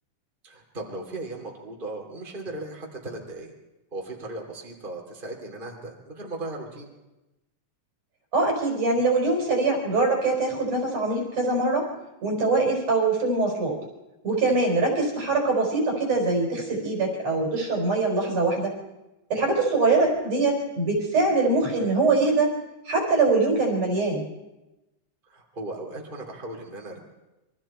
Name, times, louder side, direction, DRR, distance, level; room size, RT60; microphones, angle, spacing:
voice 1, 0.4-3.5 3.9-6.9 14.3-14.6 19.4-19.6 25.3-27.0, right 2 dB, 15° right, 0 dB, 3.0 m, -37 dB
voice 2, 8.3-11.9 12.2-13.8 14.2-18.7 19.3-22.5 22.9-24.2, right 3 dB, 60° right, 0 dB, 5.2 m, -23 dB
27.5 x 23.0 x 4.5 m, 1.0 s
omnidirectional pair, 3.4 m